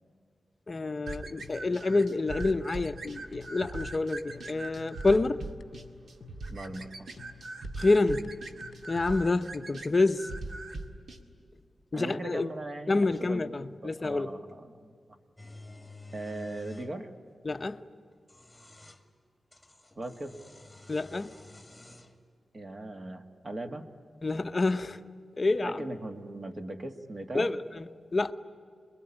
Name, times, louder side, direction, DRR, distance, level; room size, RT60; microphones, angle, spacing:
voice 1, 0.7-5.4 7.8-8.3 8.9-10.3 11.9-12.5 12.9-14.3 17.4-17.8 20.9-21.4 24.2-25.0 25.4-25.9 27.3-28.3, left 3 dB, 30° left, 0.8 m, -28 dB
sound 1, 1.1-11.2, right 2 dB, 65° right, 2.0 m, -41 dB
sound 2, 1.4-9.0, left 8 dB, 80° left, 0.8 m, -51 dB
voice 2, 6.5-7.1 11.9-13.5 13.8-15.2 16.1-17.1 20.0-20.4 22.5-23.9 25.6-27.5, right 2 dB, 35° right, 1.7 m, -39 dB
sound 3, 15.4-16.9 18.1-19.0 19.5-22.2, left 2 dB, 5° left, 1.8 m, -50 dB
27.0 x 22.0 x 9.9 m
wide cardioid pair, 170°, 0 cm